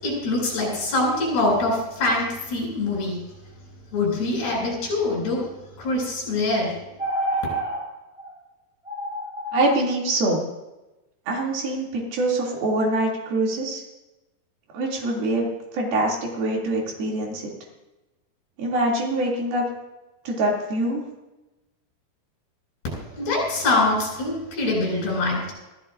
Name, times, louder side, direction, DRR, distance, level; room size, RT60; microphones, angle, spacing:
voice 1, 0.0-3.2 3.9-5.4 5.8-6.8 22.9-25.5, left 2 dB, 90° left, -3 dB, 9.3 m, -24 dB
sound 1, 7.0-7.8 8.2-8.3 8.9-9.8, right 1 dB, 10° right, 7.0 m, -28 dB
voice 2, 9.5-10.4 11.3-13.8 14.7-15.5 15.7-17.5 18.6-19.7 20.2-21.0, right 2 dB, 70° right, -2 dB, 4.7 m, -24 dB
25.0 x 15.0 x 2.7 m, 1.0 s
omnidirectional pair, 4.5 m